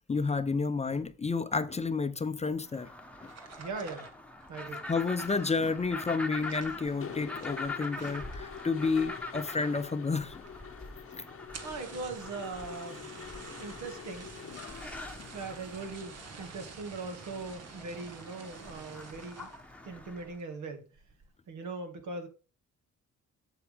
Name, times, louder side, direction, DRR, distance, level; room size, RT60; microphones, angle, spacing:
voice 1, 0.1-2.9 3.2-3.3 4.9-10.4 11.1-11.2, left 4 dB, 20° left, 0.6 m, -30 dB
sound 1, 2.6-20.4, left 2 dB, 5° left, 1.1 m, -44 dB
sound 2, 3.3-9.4 9.6-10.2 10.5-10.6 10.8-10.9 11.4-19.7 20.2-20.5 20.9-21.3, right 5 dB, 55° right, 1.6 m, -50 dB
voice 2, 3.6-4.1 4.5-4.8 11.2-11.3 11.6-13.1 13.6-14.3 15.3-19.5 19.8-20.9 21.5-22.3, right 3 dB, 75° right, 2.1 m, -40 dB
Mechanisms, 6.9-15.8, left 8 dB, 45° left, 0.9 m, -46 dB
7.6 x 7.4 x 3.4 m
cardioid pair, 90°, 30 cm